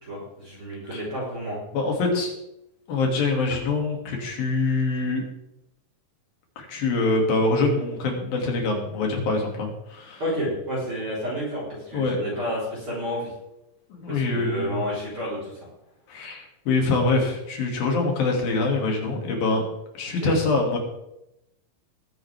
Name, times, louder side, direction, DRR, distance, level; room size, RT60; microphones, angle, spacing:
voice 1, 0.0-1.6 10.2-13.3 14.1-15.5 20.2-20.4, equal, 35° right, -7 dB, 4.5 m, -30 dB
voice 2, 1.7-2.3 2.9-5.2 6.6-10.2 11.9-12.2 13.9-14.8 16.1-19.7 20.0-20.8, left 3 dB, 80° left, 1 dB, 4.2 m, -24 dB
20.5 x 10.0 x 3.5 m, 0.86 s
omnidirectional pair, 4.1 m